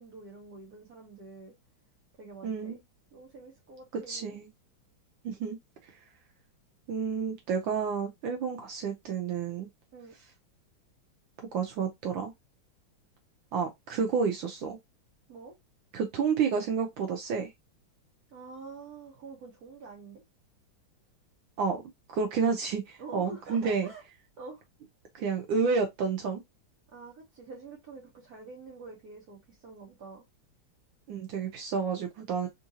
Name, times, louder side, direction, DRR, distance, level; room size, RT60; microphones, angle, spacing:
voice 1, 0.0-1.5 2.2-2.8 3.1-4.4 9.9-10.1 15.3-15.5 18.3-20.2 23.0-24.0 24.4-24.6 26.9-30.2 32.4-32.5, right 4 dB, 55° right, 1.4 m, -46 dB
voice 2, 2.4-2.8 4.1-4.5 5.2-5.6 5.8-6.0 6.9-9.7 11.5-12.3 13.5-14.8 15.9-17.5 21.6-21.8 22.1-23.9 25.1-26.4 31.1-32.5, right 5 dB, 75° right, 1.4 m, -30 dB
3.6 x 2.6 x 2.7 m
omnidirectional pair, 2.3 m